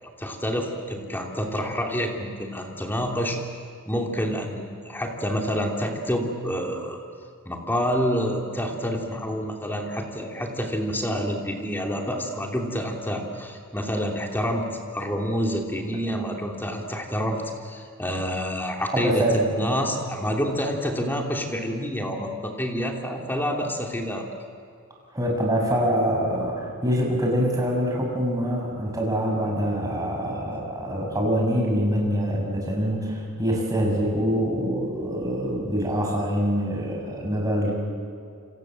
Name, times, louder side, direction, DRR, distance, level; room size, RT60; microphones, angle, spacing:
voice 1, 0.0-3.4 3.9-7.0 7.4-14.7 14.9-24.3, equal, 10° left, 1 dB, 3.1 m, -28 dB
voice 2, 19.0-19.3 25.1-37.7, equal, 15° right, -1 dB, 6.8 m, -25 dB
28.5 x 27.0 x 7.6 m, 2.4 s
head